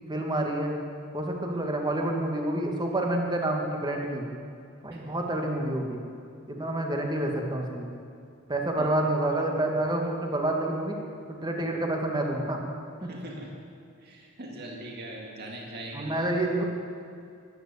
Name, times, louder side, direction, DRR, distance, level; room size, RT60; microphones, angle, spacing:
voice 1, 0.1-0.7 1.1-4.2 4.8-6.0 6.5-7.9 8.5-11.0 11.3-12.6 15.9-16.6, right 1 dB, 20° right, 1 dB, 1.8 m, -28 dB
voice 2, 13.0-13.5 14.0-16.5, right 1 dB, 50° right, -1 dB, 2.1 m, -41 dB
13.5 x 11.0 x 6.9 m, 2.5 s
head